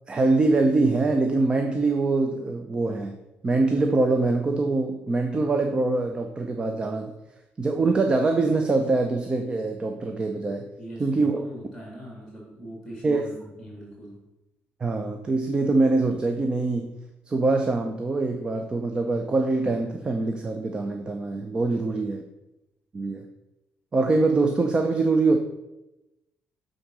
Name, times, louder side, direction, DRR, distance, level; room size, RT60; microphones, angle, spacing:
voice 1, 0.1-3.1 3.4-7.1 7.6-10.7 11.0-11.5 13.0-13.2 14.8-16.9 17.3-22.2 22.9-23.3 23.9-25.4, right 3 dB, 25° right, 5 dB, 0.5 m, -24 dB
voice 2, 10.8-14.2 21.7-22.1, right 1 dB, 5° right, -3 dB, 2.0 m, -41 dB
7.0 x 3.8 x 6.0 m, 0.96 s
cardioid pair, 140°, 4 cm